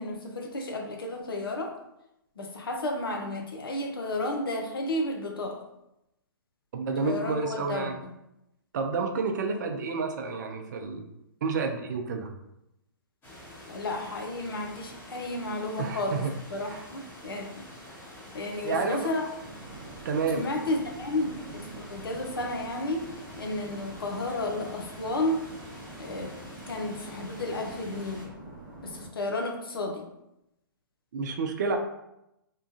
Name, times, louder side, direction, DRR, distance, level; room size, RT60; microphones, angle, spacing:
voice 1, 0.0-1.7 2.4-5.6 7.0-8.1 13.7-16.3 16.5-17.5 18.3-19.3 20.3-21.3 21.5-23.1 23.4-25.4 26.0-26.3 26.7-28.2 28.8-30.0, left 2 dB, 75° left, 2 dB, 0.6 m, -32 dB
voice 2, 6.7-8.0 8.7-11.0 11.4-12.3 15.8-16.3 16.7-16.8 18.6-19.1 20.0-20.4 31.1-31.8, right 4 dB, 50° right, 5 dB, 0.4 m, -30 dB
sound 1, 13.2-28.2, left 1 dB, 20° left, 0.9 m, -47 dB
sound 2, 19.4-29.1, right 2 dB, 20° right, 0.7 m, -46 dB
3.0 x 2.3 x 2.5 m, 0.86 s
figure-of-eight pair, 130°, 12 cm